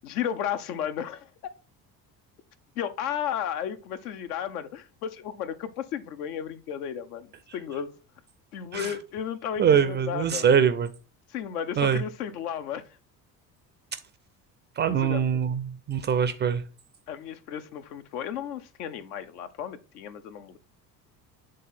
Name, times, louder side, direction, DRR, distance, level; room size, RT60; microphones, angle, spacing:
voice 1, 0.0-1.3 2.8-7.9 8.5-10.5 11.3-13.0 15.0-15.2 17.1-20.6, left 9 dB, 65° left, 0.8 m, -34 dB
voice 2, 9.6-10.9 11.8-12.0 14.8-16.6, right 7 dB, 25° right, 0.4 m, -23 dB
7.6 x 3.7 x 4.1 m
figure-of-eight pair, 55°, 50 cm